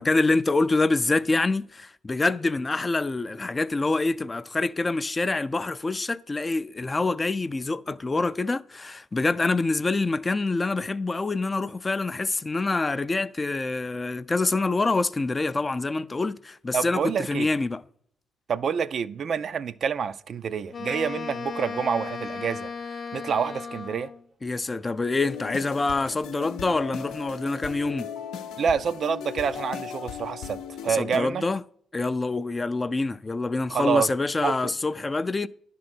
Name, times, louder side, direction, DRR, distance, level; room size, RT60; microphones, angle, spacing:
voice 1, 0.0-17.8 24.4-28.1 31.0-31.6 31.9-35.5, left 3 dB, 25° left, 0.3 m, -26 dB
voice 2, 16.7-17.5 18.5-24.1 28.6-31.5 33.7-34.1 34.4-34.7, right 7 dB, 55° right, 0.3 m, -28 dB
Wind instrument woodwind instrument, 20.7-24.2, left 5 dB, 45° left, 0.7 m, -35 dB
sound 1, 25.2-31.2, left 8 dB, 90° left, 0.6 m, -37 dB
10.5 x 3.7 x 6.0 m
cardioid pair, 90°, 0 cm